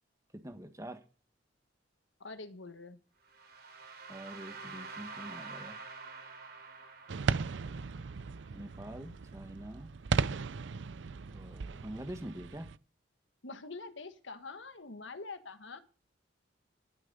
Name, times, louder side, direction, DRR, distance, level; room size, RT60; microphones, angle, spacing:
voice 1, 0.4-1.0 4.1-5.8 8.5-9.9 11.2-12.7, right 1 dB, 15° right, 8 dB, 1.5 m, -45 dB
voice 2, 2.2-3.0 13.4-15.8, left 3 dB, 80° left, 10 dB, 1.4 m, -45 dB
sound 1, 3.3-9.2, right 4 dB, 55° right, 3.0 m, -48 dB
sound 2, 7.1-12.8, right 5 dB, 75° right, 0.5 m, -36 dB
12.5 x 8.8 x 5.5 m, 0.37 s
head